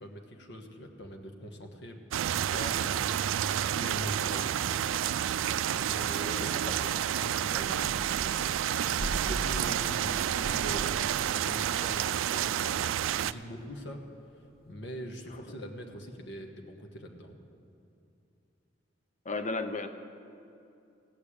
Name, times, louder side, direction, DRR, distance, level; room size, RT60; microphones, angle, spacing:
voice 1, 0.0-2.0 2.3-3.2 3.7-4.5 5.7-6.6 7.1-8.1 8.8-11.1 11.4-14.0 14.6-17.4, equal, 60° left, 3 dB, 1.3 m, -43 dB
sound 1, 2.1-13.3, right 10 dB, 85° right, 0.3 m, -30 dB
voice 2, 6.2-6.9 19.3-19.9, left 3 dB, 40° left, 8 dB, 0.6 m, -35 dB
sound 2, 8.8-11.9 13.4-14.2 14.5-14.6, equal, ahead, 3.4 m, -42 dB
16.5 x 6.7 x 8.7 m, 2.6 s
head